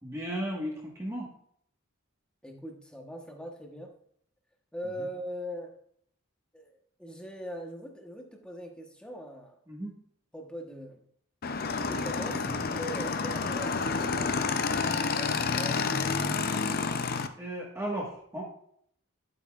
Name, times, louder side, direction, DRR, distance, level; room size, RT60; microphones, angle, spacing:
voice 1, 0.0-1.3 9.7-9.9 12.3-12.7 17.4-18.5, right 1 dB, 10° right, -2 dB, 1.4 m, -35 dB
voice 2, 2.4-3.9 4.7-5.7 6.5-9.6 10.3-11.0 11.7-12.5 12.8-14.6 15.2-16.2, equal, 5° left, 2 dB, 1.0 m, -41 dB
Motorcycle / Engine, 11.4-17.3, left 4 dB, 45° left, 0.5 m, -29 dB
11.0 x 8.1 x 2.4 m, 0.66 s
head